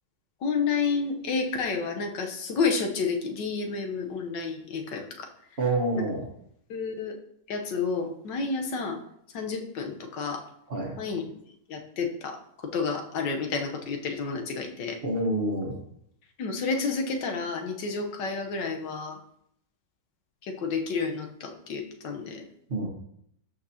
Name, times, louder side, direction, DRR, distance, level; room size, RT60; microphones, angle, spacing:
voice 1, 0.4-5.3 5.9-6.0 6.7-7.2 7.5-9.0 9.3-10.4 11.0-11.3 11.7-12.4 12.7-15.0 16.4-19.2 20.4-22.5, left 4 dB, 85° left, 4 dB, 1.6 m, -30 dB
voice 2, 5.6-6.3 10.7-11.0 15.0-15.8 22.7-22.9, right 2 dB, 40° right, 0 dB, 1.3 m, -27 dB
13.0 x 5.5 x 2.8 m, 0.71 s
omnidirectional pair, 1.9 m